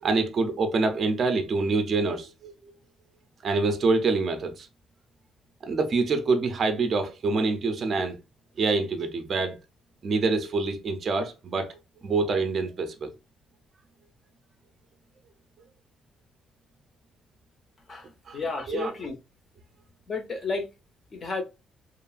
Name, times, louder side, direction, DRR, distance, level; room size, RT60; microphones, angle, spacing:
voice 1, 0.0-2.5 3.4-4.7 5.6-8.2 8.6-9.6 10.0-11.7 12.0-13.1 18.3-18.4 18.7-18.9, right 3 dB, 40° right, 0.4 m, -26 dB
voice 2, 17.9-19.2 20.1-20.7 21.1-21.4, left 3 dB, 30° left, 0.5 m, -32 dB
2.9 x 2.3 x 2.3 m
cardioid pair, 155°, 0 cm